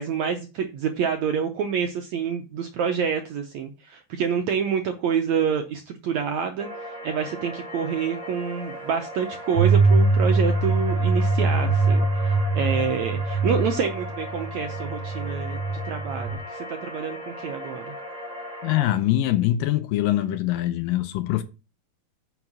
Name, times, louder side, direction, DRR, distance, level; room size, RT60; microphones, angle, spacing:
voice 1, 0.0-17.9, right 7 dB, 75° right, 1.7 m, -27 dB
sound 1, 6.6-18.9, equal, 10° right, 5.4 m, -37 dB
sound 2, 9.5-16.4, right 3 dB, 10° left, 4.0 m, -23 dB
voice 2, 18.6-21.4, left 14 dB, 80° left, 2.2 m, -23 dB
9.5 x 5.9 x 6.1 m
omnidirectional pair, 4.3 m